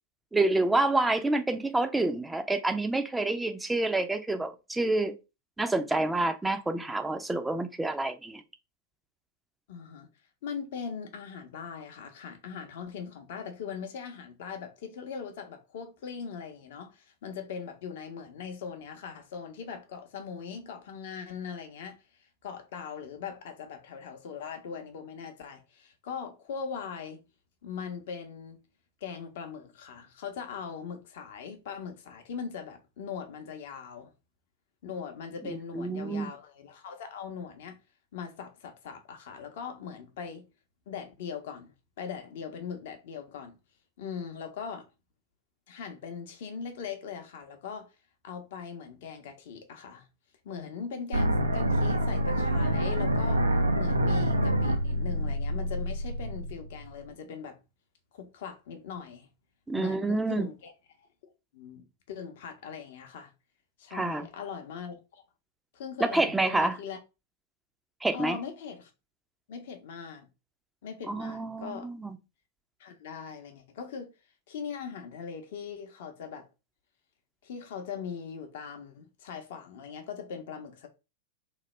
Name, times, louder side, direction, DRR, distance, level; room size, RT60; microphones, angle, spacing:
voice 1, 0.3-5.1 5.6-8.4 35.4-36.3 59.7-60.5 63.9-64.3 66.0-66.8 68.0-68.4 71.1-72.2, right 2 dB, 10° right, 0.4 m, -28 dB
voice 2, 9.7-10.1 10.4-22.0 22.4-27.2 27.6-28.6 29.0-34.1 34.8-37.8 38.1-40.4 40.9-43.6 44.0-44.9 45.7-47.9 48.2-50.1 50.4-53.5 53.7-57.6 58.1-59.3 59.7-60.7 61.2-63.3 63.8-65.2 65.7-67.0 68.1-68.9 69.5-70.3 70.8-71.9 72.8-74.1 74.5-76.5 77.4-80.9, left 6 dB, 60° left, 0.6 m, -40 dB
sound 1, 51.1-57.1, right 1 dB, 90° right, 0.4 m, -27 dB
3.0 x 2.1 x 3.1 m
figure-of-eight pair, 95°, 0 cm